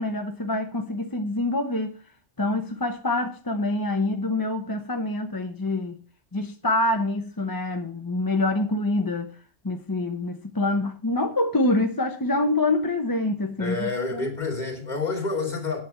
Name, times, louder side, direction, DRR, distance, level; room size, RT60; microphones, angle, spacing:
voice 1, 0.0-1.9 2.4-6.0 6.3-9.3 9.6-14.3, left 2 dB, 20° left, 0.8 m, -26 dB
voice 2, 13.6-15.8, left 3 dB, 35° left, 3.1 m, -28 dB
8.5 x 8.4 x 5.8 m
omnidirectional pair, 1.3 m